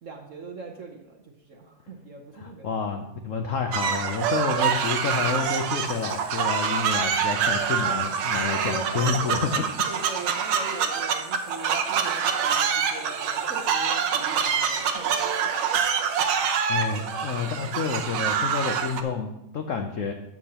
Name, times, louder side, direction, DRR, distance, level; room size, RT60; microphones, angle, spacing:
voice 1, 0.0-2.7 8.4-9.6 9.9-15.5, right 3 dB, 55° right, 3 dB, 0.9 m, -40 dB
voice 2, 2.3-9.6 16.7-20.1, left 5 dB, 80° left, 5 dB, 0.7 m, -29 dB
sound 1, 3.7-19.0, right 7 dB, 85° right, 1.6 m, -26 dB
12.0 x 8.2 x 2.9 m, 0.86 s
omnidirectional pair, 2.2 m